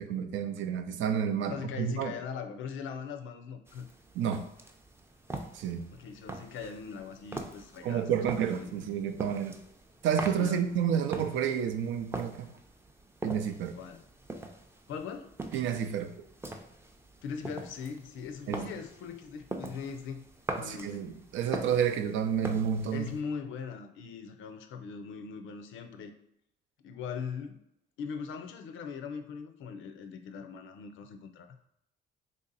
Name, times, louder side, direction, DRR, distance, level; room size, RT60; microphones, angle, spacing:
voice 1, 0.0-2.1 4.1-4.4 5.5-5.9 7.8-9.6 10.0-12.5 13.2-13.7 15.5-16.2 18.5-18.7 20.6-23.1, right 8 dB, 75° right, 8 dB, 0.5 m, -30 dB
voice 2, 1.5-3.9 5.9-8.1 8.4-8.7 10.4-10.7 13.7-14.0 14.9-15.4 17.2-20.2 20.6-21.2 22.9-26.1 26.8-27.6 28.0-31.5, left 6 dB, 80° left, 7 dB, 0.5 m, -40 dB
sound 1, 3.7-23.2, right 2 dB, 10° right, 0.4 m, -43 dB
3.2 x 2.7 x 3.9 m, 0.80 s
cardioid pair, 90°, 20 cm